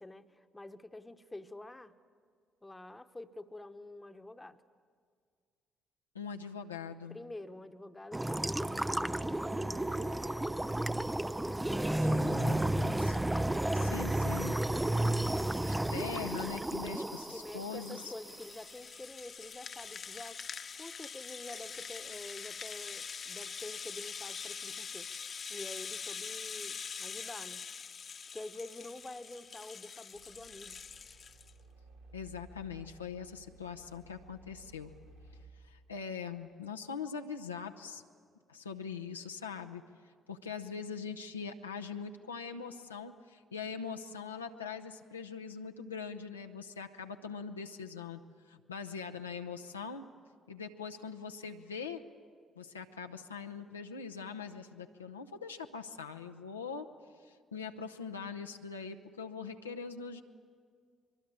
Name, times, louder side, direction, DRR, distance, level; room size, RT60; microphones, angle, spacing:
voice 1, 0.0-2.0 2.6-4.6 7.1-9.9 10.4-11.0 11.6-13.1 13.8-14.1 16.8-25.1 25.5-27.7 28.3-30.8, left 2 dB, 15° left, 10 dB, 1.1 m, -48 dB
voice 2, 6.1-7.2 12.1-13.2 13.7-14.6 15.7-18.0 32.1-34.9 35.6-38.0 38.5-39.8 40.3-48.2 48.5-50.1 50.5-52.0 52.6-56.9 57.2-60.2, left 6 dB, 85° left, 4 dB, 0.7 m, -42 dB
sound 1, 8.1-18.5, right 1 dB, 10° right, 0.5 m, -32 dB
Rattle (instrument), 17.3-31.5, left 6 dB, 40° left, 1.0 m, -44 dB
sound 2, 30.1-35.5, right 1 dB, 85° right, 3.1 m, -57 dB
24.0 x 23.0 x 8.5 m, 2.1 s
figure-of-eight pair, 45°, 0 cm